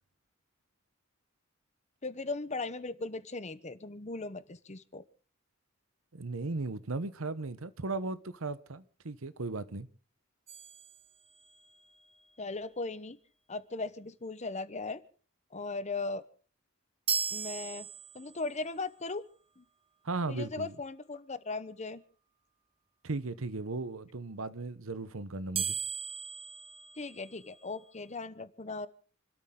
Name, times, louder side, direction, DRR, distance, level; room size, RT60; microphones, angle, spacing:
voice 1, 2.0-5.0 12.4-13.2 13.5-15.0 15.5-16.2 17.3-17.9 18.1-19.2 19.6-19.7 20.3-22.0 27.0-28.9, left 3 dB, 35° left, 1.0 m, -38 dB
voice 2, 6.1-9.9 20.0-20.7 23.0-25.8, right 3 dB, 90° right, 1.0 m, -36 dB
sound 1, 10.5-11.8 17.1-18.6 25.5-27.7, right 6 dB, 30° right, 1.1 m, -37 dB
28.5 x 13.0 x 3.8 m
head